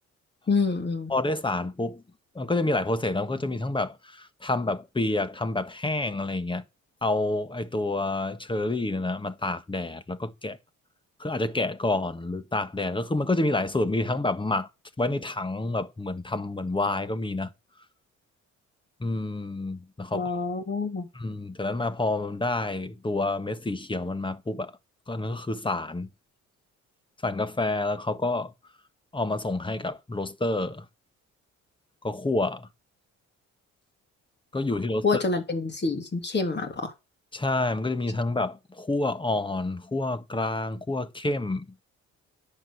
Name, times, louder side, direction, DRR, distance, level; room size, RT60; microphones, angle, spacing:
voice 1, 0.5-1.1 20.1-21.1 35.0-36.9, left 4 dB, 35° left, 3.4 m, -27 dB
voice 2, 1.1-2.0 2.3-6.6 7.0-10.6 11.2-14.7 15.0-17.5 19.0-20.3 21.1-24.7 25.1-26.1 27.2-28.5 29.1-30.8 32.0-32.7 34.5-35.2 37.3-41.7, left 2 dB, 15° left, 1.4 m, -28 dB
10.5 x 8.0 x 7.0 m
cardioid pair, 90°, 30 cm